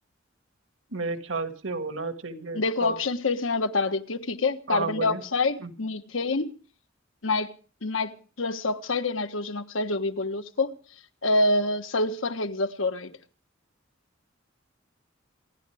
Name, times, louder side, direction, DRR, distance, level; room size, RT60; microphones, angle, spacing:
voice 1, 0.9-3.0 4.7-5.2 5.6-5.7, right 3 dB, 80° right, 2.0 m, -32 dB
voice 2, 2.5-6.5 7.2-7.5 7.8-8.1 8.4-10.7 11.2-13.1, left 3 dB, 85° left, 1.3 m, -26 dB
27.5 x 11.5 x 3.5 m
head